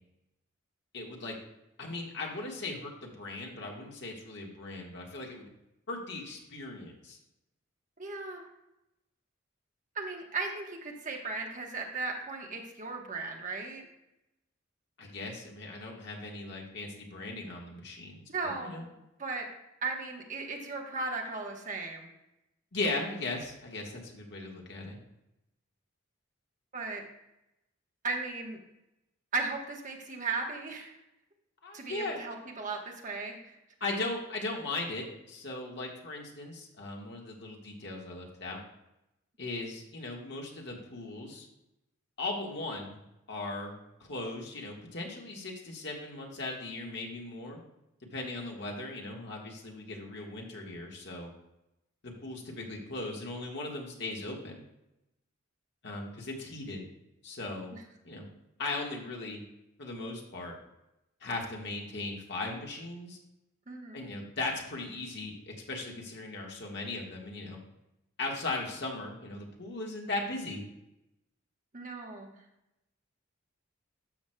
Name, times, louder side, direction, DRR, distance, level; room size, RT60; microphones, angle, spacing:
voice 1, 0.9-1.3 1.8-5.5 5.9-7.2 15.0-18.8 22.7-25.0 31.6-32.4 33.8-38.6 39.4-41.5 42.2-43.0 43.3-47.6 48.1-51.3 52.0-54.6 55.8-56.8 57.2-57.7 58.0-58.2 58.6-59.4 59.8-60.6 61.2-63.2 63.9-67.6 68.2-70.6, left 2 dB, 60° left, 0 dB, 1.5 m, -38 dB
voice 2, 8.0-8.4 9.9-13.9 18.3-18.8 19.2-19.5 19.8-22.1 26.7-27.0 28.0-28.6 29.3-31.0 31.7-33.5 48.2-48.5 57.7-57.8 63.7-64.1 71.7-72.3, right 3 dB, 40° right, 1 dB, 1.1 m, -36 dB
12.5 x 6.1 x 2.2 m, 0.88 s
head